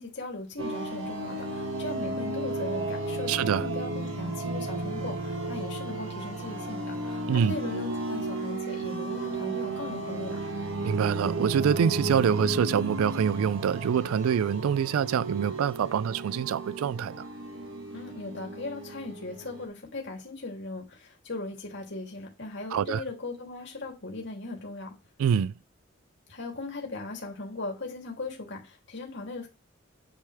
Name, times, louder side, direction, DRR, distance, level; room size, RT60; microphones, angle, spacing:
voice 1, 0.0-10.4 17.9-24.9 26.3-29.5, left 3 dB, 55° left, 3.1 m, -38 dB
sound 1, 0.6-19.6, right 2 dB, 65° right, 2.0 m, -34 dB
voice 2, 3.3-3.7 7.3-7.5 10.8-17.2 22.7-23.0 25.2-25.5, right 8 dB, 85° right, 0.3 m, -25 dB
9.8 x 6.5 x 3.5 m
head